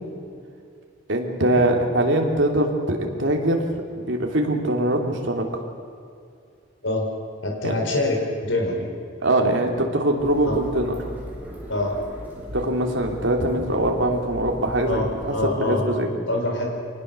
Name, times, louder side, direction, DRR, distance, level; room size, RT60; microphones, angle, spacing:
voice 1, 1.1-3.6 4.0-5.6 7.6-7.7 9.2-10.9 12.5-16.1, right 1 dB, 65° right, 2 dB, 3.1 m, -22 dB
voice 2, 7.4-8.2 8.4-8.9 10.5-10.6 11.7-11.9 14.9-16.7, left 2 dB, 70° left, 1 dB, 4.5 m, -25 dB
sound 1, 10.2-15.5, equal, 10° right, 4.3 m, -38 dB
25.0 x 19.5 x 6.9 m, 2.4 s
head